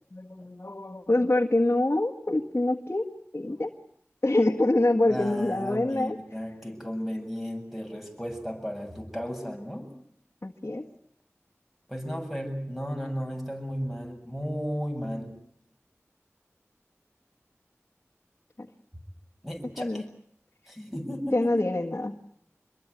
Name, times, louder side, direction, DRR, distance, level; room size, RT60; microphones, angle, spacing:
voice 1, 0.1-3.1 3.3-3.7 4.2-6.2 10.4-10.8 18.6-18.7 19.8-20.0 21.3-22.2, left 2 dB, 55° left, -1 dB, 1.7 m, -25 dB
voice 2, 5.1-9.9 11.9-15.3 19.4-20.0 20.7-21.5, equal, ahead, 3 dB, 7.5 m, -34 dB
26.0 x 22.0 x 8.1 m, 0.65 s
wide cardioid pair, 40°, 5 cm